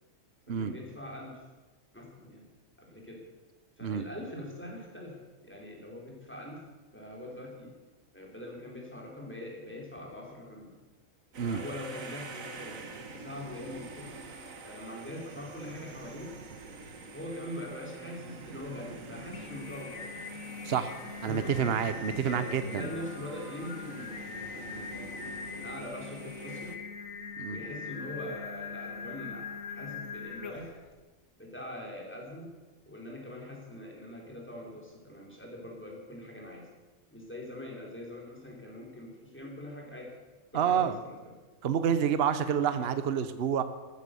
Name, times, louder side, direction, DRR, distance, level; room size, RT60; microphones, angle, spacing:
voice 1, 0.5-1.4 1.9-2.4 2.8-3.2 3.8-6.6 6.9-7.7 8.1-10.7 11.4-14.1 14.6-16.4 17.1-20.1 21.2-21.8 22.2-26.8 27.5-30.7 31.4-32.5 32.9-36.7 37.1-40.1 40.5-41.2 42.7-42.9, left 1 dB, 10° left, -2 dB, 4.5 m, -43 dB
sound 1, 11.3-26.8, right 3 dB, 80° right, 1.8 m, -46 dB
Singing, 19.1-30.9, left 5 dB, 80° left, 1.6 m, -42 dB
voice 2, 20.6-21.0 21.2-22.9 27.4-27.6 40.5-41.0 41.6-43.6, right 8 dB, 50° right, 11 dB, 1.0 m, -28 dB
14.0 x 14.0 x 6.9 m, 1.2 s
omnidirectional pair, 1.4 m